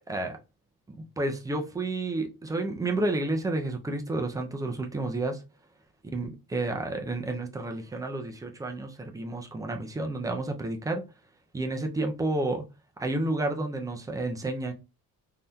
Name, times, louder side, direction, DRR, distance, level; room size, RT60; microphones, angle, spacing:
voice 1, 0.1-0.4 1.2-5.4 6.1-11.0 11.5-12.6 13.0-14.7, right 2 dB, 10° right, 0.3 m, -30 dB
3.4 x 2.7 x 2.2 m
cardioid pair, 165°, 37 cm